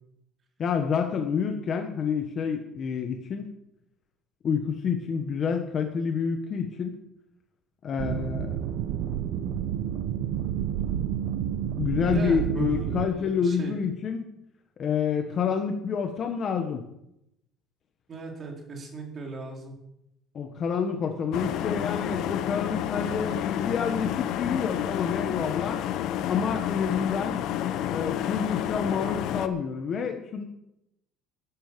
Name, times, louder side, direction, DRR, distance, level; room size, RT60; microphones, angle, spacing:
voice 1, 0.6-3.5 4.4-7.0 7.8-8.6 11.8-14.3 14.8-16.8 20.3-25.8 26.3-27.4 27.9-30.4, left 6 dB, 35° left, 4 dB, 1.4 m, -28 dB
sound 1, 8.0-13.1, right 10 dB, 65° right, 1.1 m, -30 dB
voice 2, 12.1-13.7 18.1-19.7 23.3-23.4, right 3 dB, 30° right, 1 dB, 3.5 m, -39 dB
sound 2, 21.3-29.5, left 11 dB, 55° left, 0.9 m, -30 dB
11.5 x 11.0 x 6.9 m, 0.82 s
cardioid pair, 150°, 0 cm